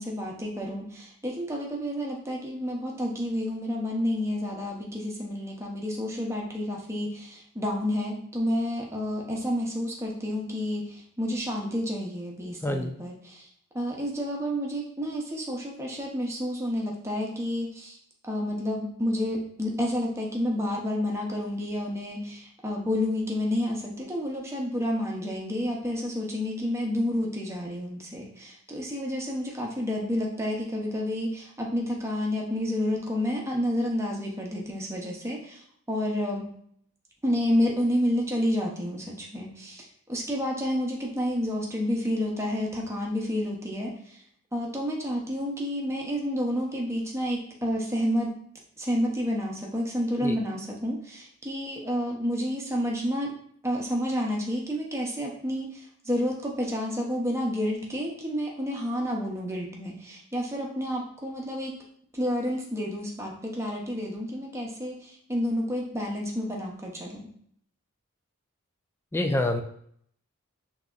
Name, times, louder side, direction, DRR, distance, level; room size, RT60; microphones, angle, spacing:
voice 1, 0.0-13.5 13.7-18.0 18.2-36.5 37.2-44.2 44.5-48.3 48.8-53.3 53.6-61.7 62.1-67.3, equal, 15° right, -1 dB, 0.7 m, -30 dB
voice 2, 12.6-13.0 50.2-50.4 69.1-69.6, left 1 dB, 10° left, 5 dB, 0.3 m, -26 dB
5.9 x 2.8 x 2.5 m, 0.66 s
head